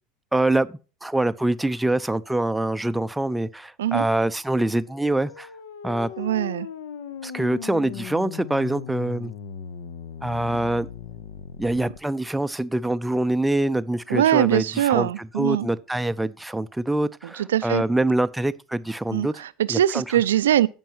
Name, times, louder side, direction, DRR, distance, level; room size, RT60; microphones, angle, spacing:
voice 1, 0.3-5.5 5.8-6.1 7.2-9.3 10.2-10.9 11.6-19.4 19.7-20.0, right 1 dB, 5° right, 0.5 m, -25 dB
sound 1, 4.9-12.0, left 8 dB, 65° left, 0.7 m, -38 dB
voice 2, 6.2-6.7 14.1-15.7 17.4-17.8 19.1-20.7, right 11 dB, 70° right, 0.4 m, -22 dB
16.0 x 5.3 x 2.8 m
figure-of-eight pair, 70°, 0 cm